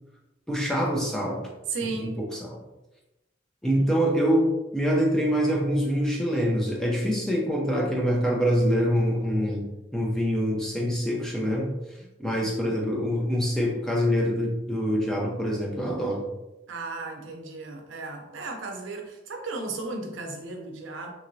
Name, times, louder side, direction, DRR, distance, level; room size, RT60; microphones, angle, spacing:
voice 1, 0.5-1.5 2.0-2.6 3.6-9.7 9.9-16.3, equal, 5° left, -2 dB, 0.4 m, -25 dB
voice 2, 1.7-2.1 3.7-3.9 16.7-21.1, right 3 dB, 80° right, 2 dB, 0.6 m, -35 dB
3.0 x 2.8 x 2.6 m, 0.98 s
head